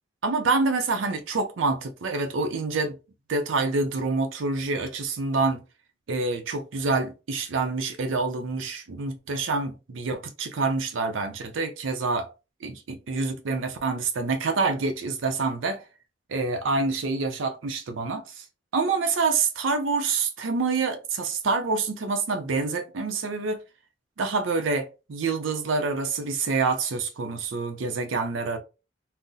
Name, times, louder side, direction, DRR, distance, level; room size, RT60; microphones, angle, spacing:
voice 1, 0.2-3.0 3.3-5.6 6.1-12.3 12.6-15.8 16.3-18.4 18.7-23.6 24.2-28.6, right 3 dB, 85° right, 0.5 m, -27 dB
3.8 x 2.0 x 2.6 m
head